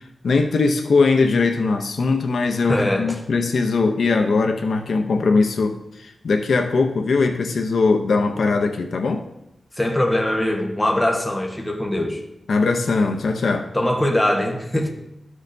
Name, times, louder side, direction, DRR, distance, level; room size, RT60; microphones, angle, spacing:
voice 1, 0.2-9.2 12.5-13.7, left 4 dB, 85° left, 5 dB, 0.7 m, -20 dB
voice 2, 2.7-3.1 9.7-12.2 13.7-14.9, left 1 dB, 10° left, 1 dB, 1.1 m, -21 dB
13.0 x 6.4 x 2.6 m, 0.84 s
wide cardioid pair, 135°, 0 cm